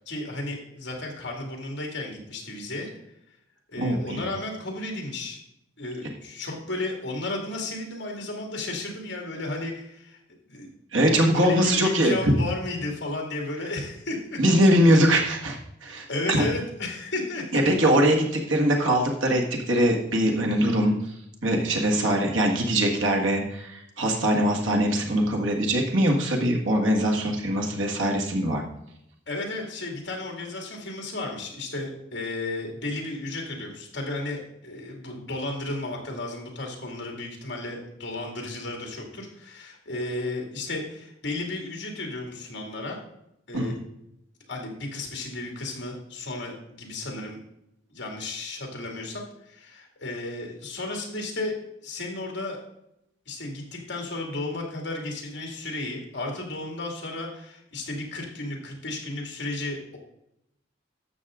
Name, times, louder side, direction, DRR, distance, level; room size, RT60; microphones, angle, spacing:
voice 1, 0.1-2.9 3.7-5.4 5.8-10.7 11.0-14.4 16.1-17.7 29.3-43.0 43.5-43.8 44.5-47.4 47.9-52.6 53.3-60.0, left 2 dB, 60° left, 1 dB, 2.3 m, -33 dB
voice 2, 3.8-4.2 10.9-12.1 14.4-16.5 17.5-21.2 21.4-28.6 43.5-43.7, right 1 dB, 80° right, 1 dB, 1.8 m, -22 dB
12.0 x 7.4 x 3.7 m, 0.80 s
head